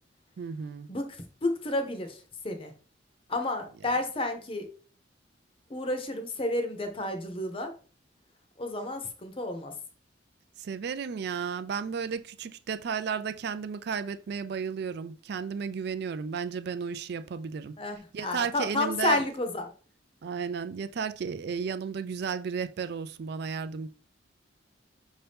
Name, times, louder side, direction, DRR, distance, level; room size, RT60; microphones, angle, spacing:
voice 1, 0.4-0.9 10.6-17.7 18.1-19.2 20.2-23.9, right 6 dB, 55° right, 0.3 m, -33 dB
voice 2, 0.9-2.7 3.3-4.7 5.7-7.7 8.6-9.7 17.8-19.7, left 2 dB, 30° left, 0.7 m, -31 dB
5.6 x 2.8 x 3.4 m
head